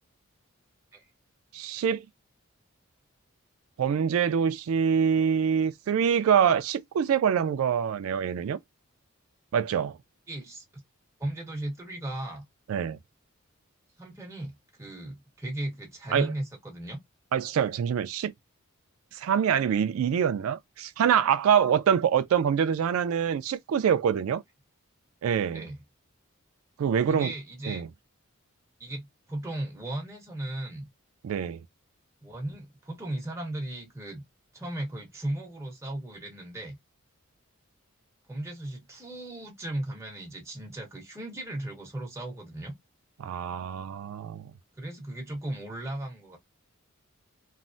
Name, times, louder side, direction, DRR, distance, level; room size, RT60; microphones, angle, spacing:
voice 1, 1.5-2.0 3.8-8.6 9.5-10.0 12.7-13.0 16.1-16.3 17.3-18.3 19.1-24.4 25.2-25.6 26.8-27.3 27.7-27.9 31.2-31.6 43.2-44.4, right 8 dB, 80° right, 0.3 m, -25 dB
voice 2, 10.3-10.8 11.2-12.4 14.0-17.0 25.5-25.8 27.1-27.8 28.8-30.9 32.2-34.2 34.5-36.8 38.3-42.8 44.8-46.4, right 1 dB, 15° right, 1.1 m, -36 dB
3.1 x 2.0 x 2.5 m
head